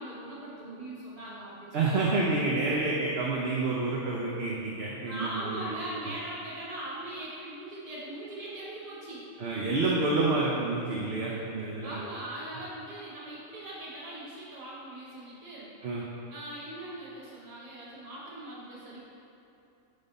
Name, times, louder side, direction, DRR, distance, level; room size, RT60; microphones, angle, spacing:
voice 1, 0.0-2.1 5.1-9.3 11.8-15.7 16.3-19.1, right 1 dB, 30° right, -8 dB, 1.4 m, -40 dB
voice 2, 1.7-5.7 9.4-12.0 15.8-16.0, right 3 dB, 55° right, -4 dB, 0.9 m, -28 dB
9.3 x 3.5 x 4.0 m, 2.9 s
omnidirectional pair, 1.4 m